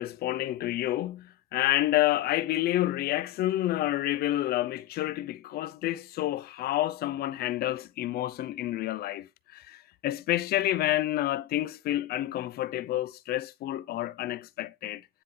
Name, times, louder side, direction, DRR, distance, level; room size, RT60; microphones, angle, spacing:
voice 1, 0.0-15.1, left 14 dB, 65° left, 0.5 m, -29 dB
9.8 x 3.7 x 3.8 m
cardioid pair, 110°, 17 cm